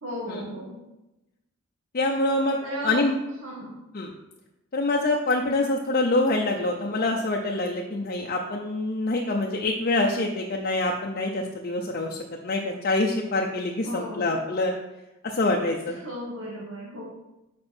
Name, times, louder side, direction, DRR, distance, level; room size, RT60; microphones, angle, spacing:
voice 1, 0.0-0.8 2.6-3.0 3.4-3.8 13.8-14.4 15.8-17.0, equal, 80° right, -5 dB, 1.9 m, -35 dB
voice 2, 1.9-2.6 2.8-3.2 3.9-4.1 4.7-12.2 12.4-14.8 15.2-16.0, left 2 dB, 45° left, -1 dB, 0.7 m, -25 dB
7.8 x 5.2 x 4.4 m, 0.95 s
head